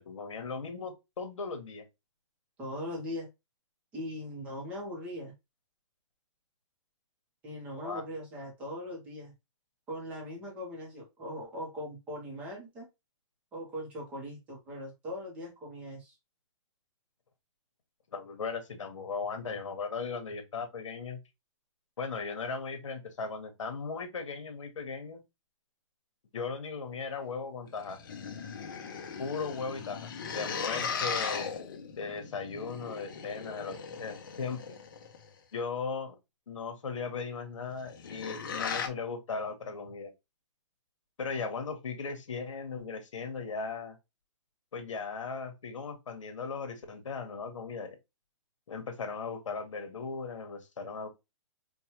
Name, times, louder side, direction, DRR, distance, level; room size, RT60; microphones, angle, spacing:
voice 1, 0.0-1.9 7.8-8.0 18.1-21.2 22.0-25.2 26.3-28.0 29.2-31.5 32.0-34.8 35.5-36.2 36.5-40.1 41.2-44.0 44.7-48.0 48.7-51.1, left 5 dB, 75° left, 1.1 m, -37 dB
voice 2, 2.6-3.3 3.9-5.3 7.4-9.3 9.9-12.9 13.5-16.1, left 1 dB, 10° right, 0.7 m, -40 dB
sound 1, 27.7-35.3 37.7-38.9, left 6 dB, 40° left, 0.7 m, -38 dB
4.6 x 2.2 x 2.9 m
hypercardioid pair, 175°, 16 cm